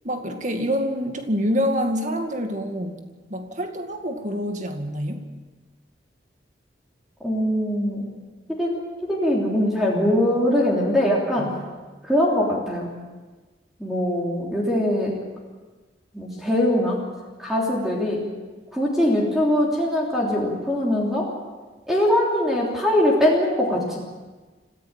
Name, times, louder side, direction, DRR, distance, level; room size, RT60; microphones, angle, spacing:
voice 1, 0.0-3.0 3.3-5.2 11.4-11.5, equal, 40° right, 5 dB, 2.1 m, -26 dB
voice 2, 7.2-8.1 8.5-8.7 9.0-11.5 12.0-12.9 13.8-15.2 16.1-17.0 17.4-18.3 18.7-21.3 21.9-24.0, left 1 dB, ahead, -4 dB, 3.2 m, -22 dB
25.5 x 15.5 x 7.5 m, 1.3 s
head